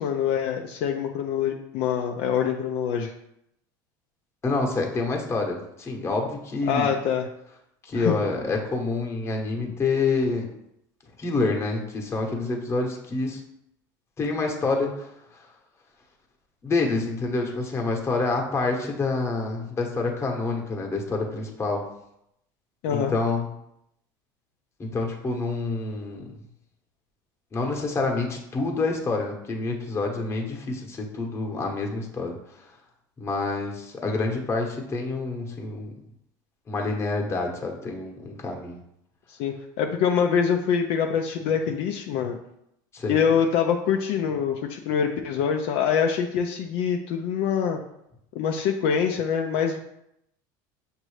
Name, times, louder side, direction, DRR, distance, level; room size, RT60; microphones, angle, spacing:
voice 1, 0.0-3.1 6.7-7.3 7.9-8.2 22.8-23.1 39.3-42.4 43.1-47.8 48.3-49.8, left 7 dB, 65° left, 3 dB, 0.5 m, -25 dB
voice 2, 4.4-6.9 7.8-10.5 11.2-13.4 14.2-15.1 15.4-15.5 16.6-21.8 22.9-23.4 24.8-26.3 27.5-32.7 33.2-35.9 36.7-38.8 42.9-43.2, left 3 dB, 25° left, 1 dB, 1.0 m, -27 dB
6.1 x 2.6 x 3.2 m, 0.79 s
supercardioid pair, 100°, 11 cm